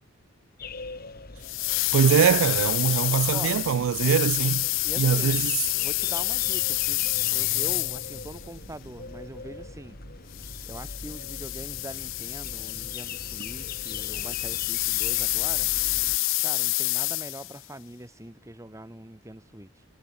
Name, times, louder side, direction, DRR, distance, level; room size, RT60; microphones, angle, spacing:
sound 1, 0.6-16.2, left 4 dB, 45° left, 1.7 m, -42 dB
sound 2, 1.4-8.4 10.3-17.6, left 22 dB, 65° left, 0.4 m, -28 dB
voice 1, 1.9-4.7 5.0-5.6, right 8 dB, 70° right, 0.3 m, -22 dB
sound 3, 4.3-14.7, right 1 dB, 55° right, 2.7 m, -50 dB
voice 2, 4.8-5.5 5.8-10.0 10.7-15.7 16.4-19.8, right 1 dB, 15° right, 1.4 m, -42 dB
head